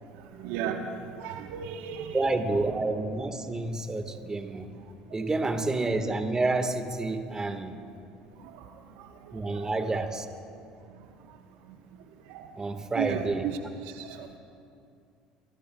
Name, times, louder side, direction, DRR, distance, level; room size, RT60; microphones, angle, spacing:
voice 1, 0.4-2.3 5.2-5.3 8.4-8.6 9.0-9.1 9.5-10.0 12.3-12.5 12.9-13.6 13.8-14.3, right 8 dB, 70° right, 5 dB, 1.0 m, -35 dB
voice 2, 2.1-4.7 5.1-7.8 9.3-10.2 12.6-13.4, right 2 dB, 20° right, 7 dB, 1.4 m, -29 dB
25.0 x 24.0 x 2.2 m, 2.5 s
hypercardioid pair, 70°, 3 cm